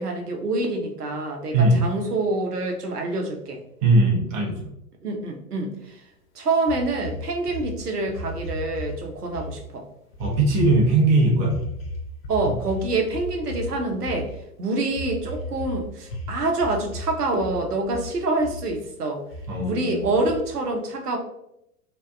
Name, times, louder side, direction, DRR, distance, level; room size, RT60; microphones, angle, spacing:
voice 1, 0.0-3.6 5.0-6.0 6.4-9.8 12.3-19.2 19.6-21.2, right 2 dB, 85° right, 2 dB, 0.6 m, -26 dB
voice 2, 1.5-1.9 3.8-4.7 10.2-11.6 19.5-20.1, right 2 dB, 20° right, -2 dB, 0.5 m, -19 dB
sound 1, 6.7-8.9 9.2-9.5 10.1-11.0 11.4-14.4 14.9-15.8 16.0-17.1 17.3-18.1 18.4-18.9 19.3-19.4 20.0-20.6, equal, 40° left, 0.6 m, -34 dB
2.7 x 2.1 x 2.2 m, 0.79 s
figure-of-eight pair, 100°, 45 cm